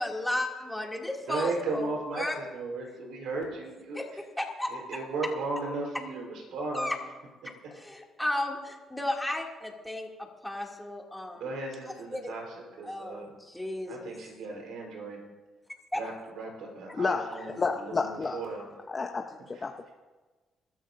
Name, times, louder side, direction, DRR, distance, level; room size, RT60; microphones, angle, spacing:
voice 1, 0.0-1.9 2.2-2.4 3.9-4.1 4.4-5.0 6.7-7.0 7.4-11.5 12.1-12.3 12.8-14.1 15.9-16.0, left 1 dB, 5° left, 0 dB, 2.5 m, -34 dB
voice 2, 1.2-4.2 4.7-6.9 11.3-13.3 13.9-15.2 15.9-18.6 19.5-19.6, right 3 dB, 80° right, 0 dB, 4.1 m, -36 dB
voice 3, 17.0-18.4 18.9-19.9, left 4 dB, 35° left, 3 dB, 0.8 m, -31 dB
25.0 x 13.5 x 2.6 m, 1.3 s
cardioid pair, 90°, 0 cm